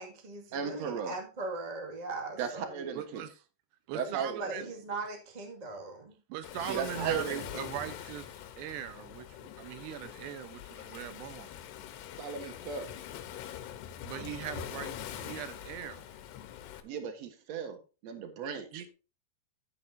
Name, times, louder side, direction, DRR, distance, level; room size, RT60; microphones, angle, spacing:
voice 1, 0.0-3.0 4.0-6.2, right 3 dB, 40° right, 0.6 m, -40 dB
voice 2, 0.5-1.1 2.4-3.2 3.9-4.3 6.7-7.6 12.2-12.9 16.8-18.9, right 6 dB, 60° right, 1.8 m, -36 dB
voice 3, 2.9-3.4 3.9-4.6 6.3-11.5 14.0-16.1 18.7-18.9, right 11 dB, 80° right, 2.9 m, -40 dB
Waves surf, 6.4-16.8, left 10 dB, 80° left, 3.0 m, -43 dB
11.0 x 9.1 x 2.7 m
omnidirectional pair, 5.0 m